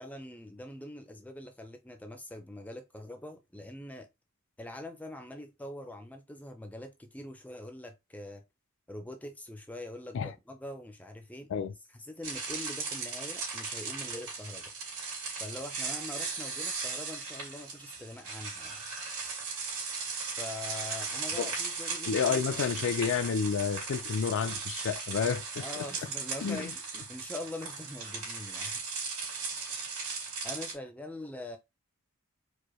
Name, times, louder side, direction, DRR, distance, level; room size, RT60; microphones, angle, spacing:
voice 1, 0.0-4.1 4.6-8.4 8.9-11.5 11.9-14.7 15.4-18.8 20.4-22.6 25.6-28.7 30.4-31.6, left 1 dB, 5° left, 0.5 m, -43 dB
sound 1, 12.2-30.8, right 4 dB, 75° right, 2.5 m, -37 dB
voice 2, 22.1-25.6 26.4-26.7, left 6 dB, 60° left, 0.4 m, -30 dB
4.7 x 2.2 x 3.0 m
head